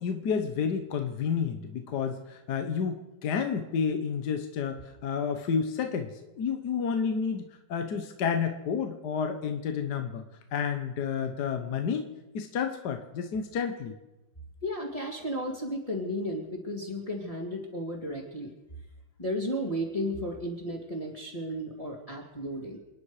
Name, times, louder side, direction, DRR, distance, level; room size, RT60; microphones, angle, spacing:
voice 1, 0.0-7.4 7.7-10.2 10.5-12.1 12.3-13.9, left 6 dB, 60° left, 6 dB, 1.6 m, -30 dB
voice 2, 14.6-18.5 19.2-22.8, equal, 15° left, -2 dB, 2.5 m, -34 dB
29.0 x 10.0 x 4.9 m, 1.0 s
omnidirectional pair, 2.2 m